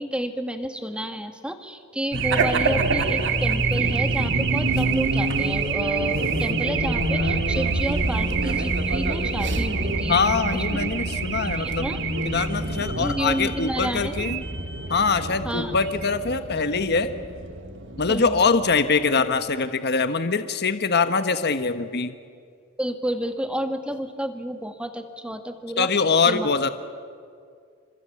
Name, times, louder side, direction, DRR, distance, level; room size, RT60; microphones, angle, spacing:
voice 1, 0.0-10.2 10.5-10.6 11.6-12.0 13.0-14.1 15.4-15.7 18.1-18.4 22.8-25.9 26.3-26.5, equal, 5° right, 6 dB, 1.8 m, -30 dB
Race car auto racing / Alarm, 2.1-19.1, right 3 dB, 60° right, 2.1 m, -26 dB
voice 2, 10.1-11.9 12.2-14.4 14.9-17.1 18.0-22.2 25.8-26.7, left 4 dB, 50° left, 9 dB, 1.2 m, -23 dB
28.0 x 24.5 x 8.5 m, 2.2 s
head